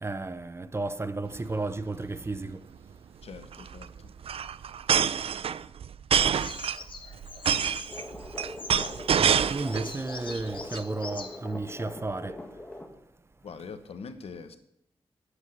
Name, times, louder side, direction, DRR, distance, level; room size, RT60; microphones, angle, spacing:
voice 1, 0.0-2.6 9.2-12.4, right 3 dB, 25° right, 0.6 m, -33 dB
sound 1, 1.3-1.5 1.8-1.9 2.1-2.4 3.3-9.9 10.3-10.8, right 8 dB, 70° right, 0.4 m, -27 dB
voice 2, 3.2-4.1 13.4-14.6, left 5 dB, 80° left, 1.1 m, -43 dB
Bird vocalization bird call bird song, 6.3-11.9, left 4 dB, 55° left, 1.1 m, -44 dB
sound 2, 7.8-12.9, left 1 dB, 15° left, 1.5 m, -42 dB
9.2 x 8.1 x 6.6 m
wide cardioid pair, 105°, 10 cm